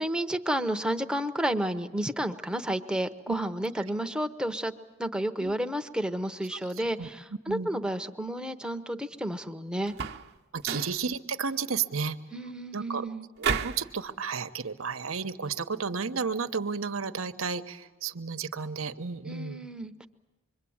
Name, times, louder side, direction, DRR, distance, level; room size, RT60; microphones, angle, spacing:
voice 1, 0.0-4.7 5.0-9.9 12.3-13.2 19.3-20.1, right 1 dB, 5° right, 7 dB, 0.8 m, -31 dB
sound 1, 9.9-10.3 10.6-11.0 13.4-13.9, right 6 dB, 55° right, 1.0 m, -30 dB
voice 2, 10.5-12.2 12.7-13.0 13.4-19.6, right 5 dB, 80° right, 10 dB, 1.0 m, -32 dB
26.0 x 23.0 x 8.7 m, 1.1 s
head